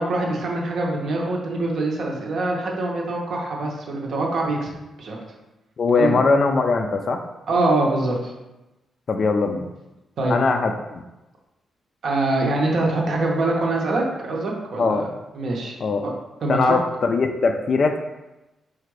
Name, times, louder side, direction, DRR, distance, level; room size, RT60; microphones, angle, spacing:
voice 1, 0.0-4.7 5.0-5.2 5.9-6.1 7.5-8.3 10.2-10.3 12.0-15.0 15.3-15.8 16.0-16.1 16.4-16.8, right 2 dB, 50° right, -1 dB, 0.8 m, -24 dB
voice 2, 5.8-7.2 9.1-9.7 10.3-11.0 14.8-15.1 15.8-16.1 16.5-18.0, left 4 dB, 40° left, 6 dB, 0.3 m, -21 dB
4.6 x 2.4 x 4.7 m, 1.0 s
wide cardioid pair, 170°, 0 cm